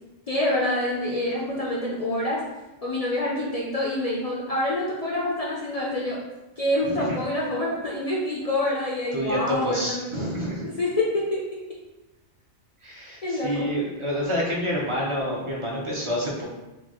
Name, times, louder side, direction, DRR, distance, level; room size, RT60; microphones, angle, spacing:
voice 1, 0.3-2.4 2.8-6.2 6.6-10.1 10.6-11.4 13.2-13.7, left 1 dB, 50° left, -5 dB, 0.4 m, -26 dB
voice 2, 9.1-10.7 12.8-16.4, equal, 35° right, -3 dB, 0.5 m, -28 dB
4.5 x 2.3 x 2.9 m, 1.0 s
omnidirectional pair, 1.3 m